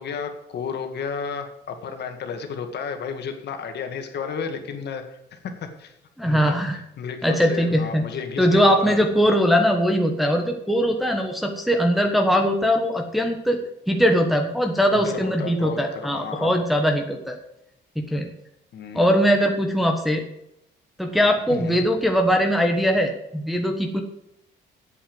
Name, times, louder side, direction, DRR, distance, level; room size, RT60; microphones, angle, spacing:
voice 1, 0.0-5.9 6.2-9.0 15.0-16.5 18.7-19.1 21.5-21.9, left 6 dB, 60° left, 6 dB, 2.0 m, -33 dB
voice 2, 6.2-6.8 7.2-8.0 8.4-13.6 13.9-17.4 18.0-18.3 18.9-20.2 21.0-24.0, equal, ahead, 2 dB, 1.2 m, -21 dB
8.6 x 8.4 x 7.9 m, 0.81 s
cardioid pair, 135°, 20 cm